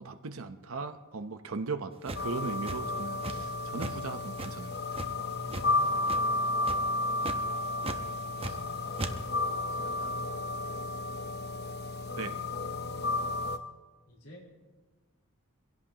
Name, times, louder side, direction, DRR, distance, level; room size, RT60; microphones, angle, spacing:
voice 1, 0.0-4.8 12.2-12.4, right 4 dB, 70° right, 8 dB, 0.8 m, -38 dB
sound 1, 2.0-3.5 3.8-4.0 4.4-5.7 6.0-6.3 6.6-6.9 7.2-7.4 7.8-8.7 9.0-9.1, right 2 dB, 25° right, 0.9 m, -37 dB
sound 2, 2.2-13.6, left 2 dB, 45° left, 0.8 m, -32 dB
voice 2, 5.3-6.6 7.5-7.9 8.2-9.3 9.7-11.3 14.1-14.5, equal, 65° left, -2 dB, 4.4 m, -52 dB
24.5 x 16.5 x 2.9 m, 1.3 s
head